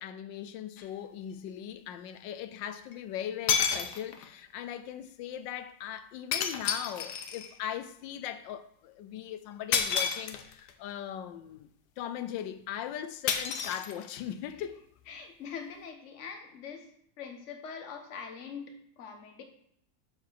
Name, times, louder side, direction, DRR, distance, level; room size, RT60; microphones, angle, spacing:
voice 1, 0.0-11.7 12.0-14.8, left 10 dB, 90° left, 1.3 m, -39 dB
sound 1, 0.8-0.9 2.9-3.0 3.5-4.4 6.3-7.6 9.7-10.7 13.3-14.4, left 7 dB, 70° left, 1.3 m, -30 dB
voice 2, 15.1-16.9 17.2-19.4, left 6 dB, 45° left, 1.2 m, -43 dB
7.2 x 5.0 x 5.9 m
omnidirectional pair, 1.9 m